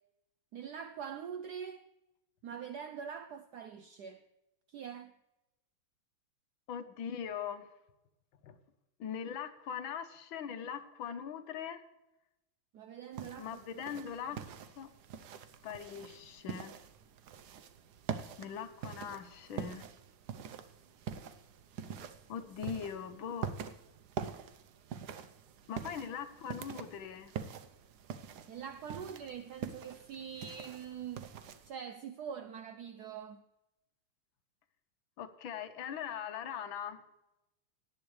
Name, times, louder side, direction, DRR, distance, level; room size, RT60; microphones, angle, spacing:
voice 1, 0.5-1.8 2.4-4.2 4.7-5.1 12.7-14.0 14.3-14.4 28.5-31.3 31.7-33.4, right 7 dB, 80° right, 0.9 m, -44 dB
voice 2, 6.7-7.7 8.4-8.6 9.0-11.8 13.4-14.4 14.8-14.9 15.6-16.8 18.4-19.9 22.3-23.5 25.7-27.3 35.2-37.0, left 8 dB, 70° left, 1.6 m, -41 dB
sound 1, 13.1-31.7, right 7 dB, 65° right, 1.1 m, -45 dB
17.5 x 10.5 x 3.2 m
omnidirectional pair, 2.4 m